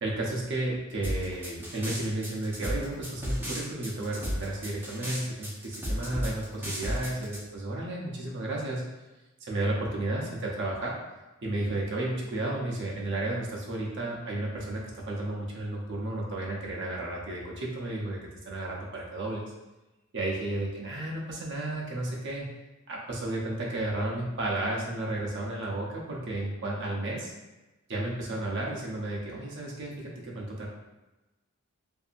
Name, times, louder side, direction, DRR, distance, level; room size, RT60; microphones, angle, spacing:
voice 1, 0.0-8.8 9.4-10.9 11.4-18.2 18.4-19.5 20.1-22.5 22.9-27.3 27.9-30.7, right 2 dB, 55° right, -3 dB, 0.6 m, -32 dB
sound 1, 1.0-7.4, equal, 10° right, 0.6 m, -33 dB
2.7 x 2.6 x 2.4 m, 1.0 s
head